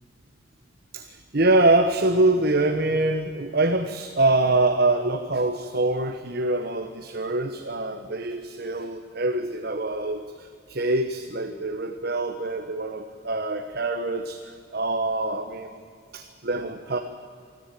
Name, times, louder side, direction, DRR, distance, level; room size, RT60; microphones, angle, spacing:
voice 1, 0.9-15.7 16.1-17.0, right 2 dB, 50° right, 6 dB, 1.1 m, -24 dB
24.0 x 14.0 x 9.0 m, 2.3 s
head